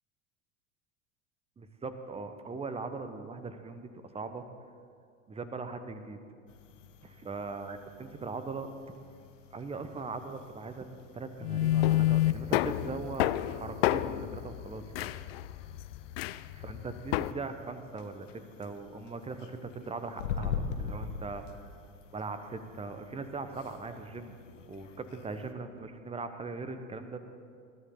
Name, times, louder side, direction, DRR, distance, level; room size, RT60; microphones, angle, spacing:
voice 1, 1.6-4.4 5.3-6.2 7.0-8.7 9.5-10.9 11.1-15.1 16.5-18.3 18.6-21.4 22.1-24.4 24.7-27.2, right 4 dB, 15° right, 9 dB, 1.1 m, -40 dB
sound 1, 6.5-25.5, left 6 dB, 65° left, 1.2 m, -45 dB
sound 2, 11.4-17.3, left 15 dB, 50° left, 0.5 m, -29 dB
20.5 x 13.0 x 3.8 m, 2.4 s
figure-of-eight pair, 75°, 40 cm